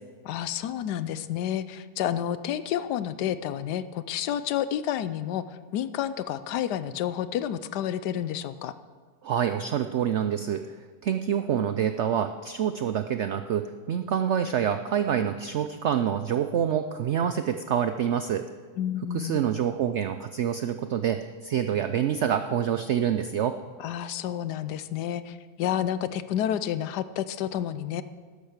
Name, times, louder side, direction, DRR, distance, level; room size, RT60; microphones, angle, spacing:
voice 1, 0.2-8.7 18.8-19.4 23.8-28.0, left 10 dB, 75° left, 14 dB, 1.2 m, -30 dB
voice 2, 9.2-10.8 11.0-18.5 19.1-23.6, right 9 dB, 85° right, 9 dB, 0.6 m, -27 dB
12.0 x 10.5 x 6.6 m, 1.5 s
omnidirectional pair, 1.8 m